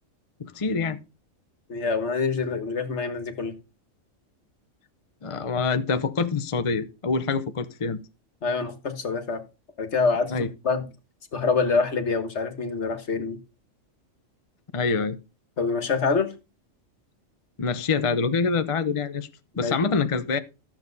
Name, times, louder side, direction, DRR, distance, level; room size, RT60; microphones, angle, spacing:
voice 1, 0.4-1.0 5.2-8.0 10.3-10.5 14.7-15.2 17.6-19.3 19.5-20.4, left 4 dB, 30° left, 0.6 m, -25 dB
voice 2, 1.7-3.5 8.4-9.4 9.8-10.9 11.3-13.4 15.6-16.3 19.6-19.7, left 4 dB, 55° left, 1.6 m, -26 dB
13.0 x 7.4 x 4.0 m
omnidirectional pair, 1.4 m